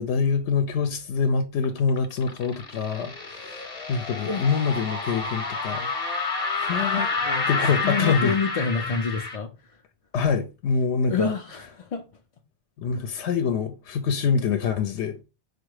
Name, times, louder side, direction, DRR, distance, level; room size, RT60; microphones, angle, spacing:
voice 1, 0.0-5.9 6.5-7.1 7.5-8.3 10.1-11.3 12.8-15.2, left 5 dB, 75° left, 0.8 m, -25 dB
sound 1, 1.6-9.4, left 3 dB, 40° left, 0.8 m, -29 dB
voice 2, 7.1-7.5 7.8-9.8 11.1-12.1, left 5 dB, 60° left, 0.3 m, -28 dB
4.6 x 2.3 x 4.6 m
omnidirectional pair, 1.2 m